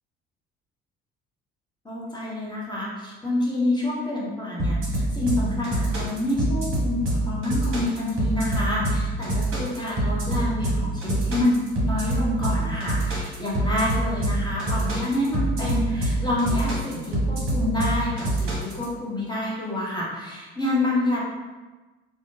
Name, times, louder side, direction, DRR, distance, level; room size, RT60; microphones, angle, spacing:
voice 1, 1.8-21.2, left 1 dB, 15° left, -6 dB, 1.0 m, -27 dB
sound 1, 4.6-18.8, right 1 dB, 40° right, 1.0 m, -25 dB
2.9 x 2.2 x 2.7 m, 1.2 s
figure-of-eight pair, 50°, 32 cm